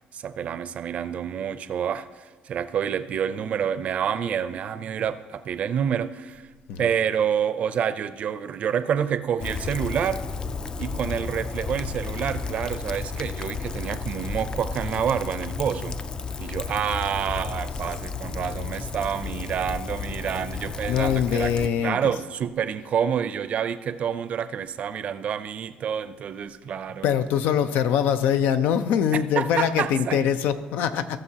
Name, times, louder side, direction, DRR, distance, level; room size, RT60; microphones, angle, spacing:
voice 1, 0.1-6.4 6.8-10.2 10.8-16.0 16.4-27.1 29.1-30.2, right 8 dB, 50° right, 13 dB, 0.5 m, -28 dB
Rain, 9.4-21.7, left 4 dB, 25° left, 0.4 m, -32 dB
voice 2, 20.9-22.0 27.0-31.2, left 8 dB, 80° left, 11 dB, 0.6 m, -23 dB
18.5 x 6.6 x 2.9 m, 1.4 s
cardioid pair, 130°, 3 cm